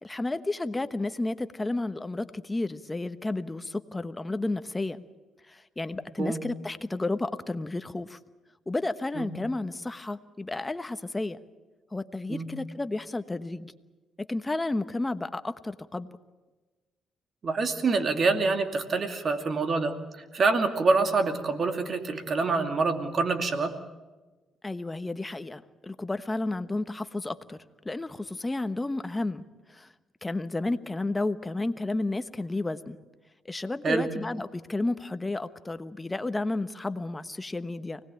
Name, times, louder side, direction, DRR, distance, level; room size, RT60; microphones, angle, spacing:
voice 1, 0.0-5.0 5.5-8.2 8.7-11.4 11.9-13.7 14.2-16.1 24.6-27.6 27.8-29.9 30.2-33.0 33.4-38.0, left 2 dB, 15° left, 11 dB, 1.1 m, -32 dB
voice 2, 17.4-23.8 33.8-34.1, right 4 dB, 45° right, 7 dB, 2.5 m, -26 dB
24.5 x 19.0 x 9.0 m, 1.2 s
cardioid pair, 90°, 0 cm